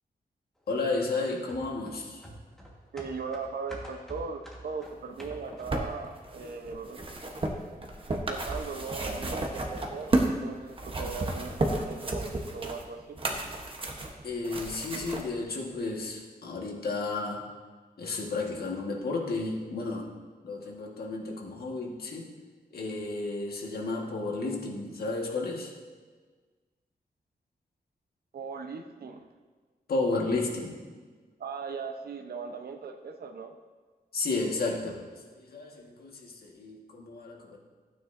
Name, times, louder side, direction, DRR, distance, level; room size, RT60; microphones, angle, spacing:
voice 1, 0.7-2.3 14.2-17.5 18.0-20.1 20.4-22.3 22.7-25.7 29.9-30.8 34.1-37.6, left 3 dB, 70° left, -1 dB, 1.6 m, -32 dB
sound 1, 1.5-6.0 6.3-6.4, right 1 dB, ahead, 1.5 m, -47 dB
voice 2, 2.9-7.0 8.1-10.1 10.4-13.2 28.3-29.3 31.4-33.5, right 5 dB, 70° right, 5 dB, 0.8 m, -38 dB
sound 2, 5.2-10.4 10.7-15.2 16.0-16.1, right 2 dB, 35° right, 1.0 m, -32 dB
15.0 x 9.2 x 2.6 m, 1.4 s
wide cardioid pair, 170°, 17 cm